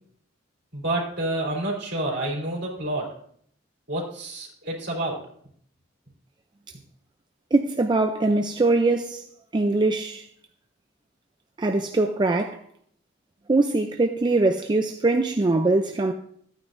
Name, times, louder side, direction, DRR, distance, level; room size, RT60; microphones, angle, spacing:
voice 1, 0.7-3.1 3.9-5.3, right 1 dB, 60° right, 3.4 m, -29 dB
voice 2, 7.5-9.2 9.5-10.2 11.6-12.6 13.5-16.1, right 2 dB, 25° right, 0.4 m, -22 dB
14.0 x 9.3 x 2.6 m
head